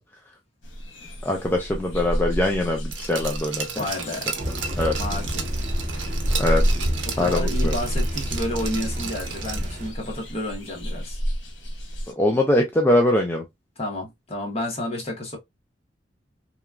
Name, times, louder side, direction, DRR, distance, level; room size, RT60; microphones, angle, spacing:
sound 1, 0.6-12.1, equal, 85° left, 1.0 m, -29 dB
voice 1, 1.2-3.9 4.8-4.9 6.4-6.7 7.2-7.7 12.1-13.4, left 1 dB, 10° left, 0.3 m, -22 dB
Glass, 2.9-9.8 10.2-10.3, right 6 dB, 80° right, 0.6 m, -34 dB
voice 2, 3.8-4.3 5.0-5.4 7.1-11.2 13.8-15.4, left 1 dB, 35° left, 1.0 m, -30 dB
Thunder / Rain, 4.4-9.9, equal, 40° right, 0.9 m, -32 dB
2.9 x 2.3 x 2.3 m
head